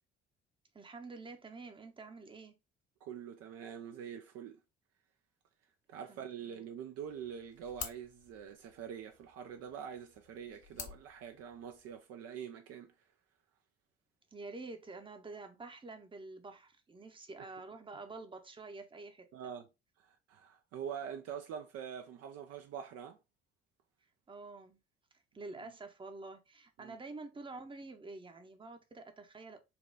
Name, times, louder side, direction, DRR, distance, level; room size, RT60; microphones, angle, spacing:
voice 1, 0.7-2.5 6.1-6.7 14.3-19.3 24.3-24.8 25.3-29.6, right 3 dB, 15° right, 0.8 m, -48 dB
voice 2, 3.0-4.6 5.9-12.9 17.4-17.5 19.3-19.7 20.0-23.2 26.8-27.0, right 8 dB, 50° right, 0.5 m, -45 dB
sound 1, 7.0-12.0, left 7 dB, 55° left, 0.8 m, -50 dB
4.2 x 2.3 x 3.7 m
figure-of-eight pair, 50°, 31 cm